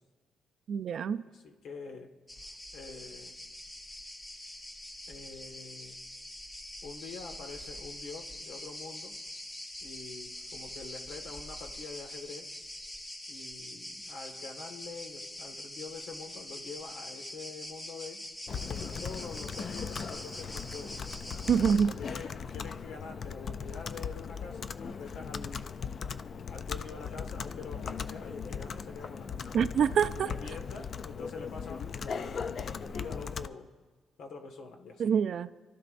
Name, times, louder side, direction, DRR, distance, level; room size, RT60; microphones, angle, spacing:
voice 1, 0.7-1.2 21.5-21.9 29.5-30.3 35.0-35.5, right 7 dB, 45° right, 0.4 m, -26 dB
voice 2, 1.3-2.1 2.7-3.4 5.1-6.0 6.8-9.1 9.8-12.5 13.3-18.2 18.7-21.0 21.5-25.7 26.5-29.5 30.1-33.7 34.2-35.1, left 4 dB, 70° left, 1.6 m, -46 dB
sound 1, 2.3-21.8, left 1 dB, 15° left, 0.8 m, -44 dB
Computer keyboard, 18.5-33.5, left 6 dB, 35° left, 0.3 m, -38 dB
27.5 x 13.0 x 2.6 m
cardioid pair, 180°, 0 cm